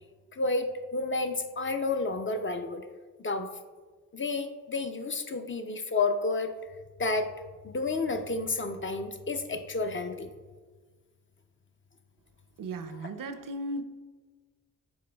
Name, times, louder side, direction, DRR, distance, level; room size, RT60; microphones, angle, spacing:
voice 1, 0.3-2.9 3.2-3.5 4.1-6.5 7.0-7.3 7.6-10.3, left 3 dB, 35° left, 7 dB, 0.4 m, -30 dB
voice 2, 12.6-13.8, right 2 dB, 60° right, 9 dB, 0.5 m, -36 dB
7.8 x 3.0 x 2.2 m, 1.4 s
supercardioid pair, 40°, 38 cm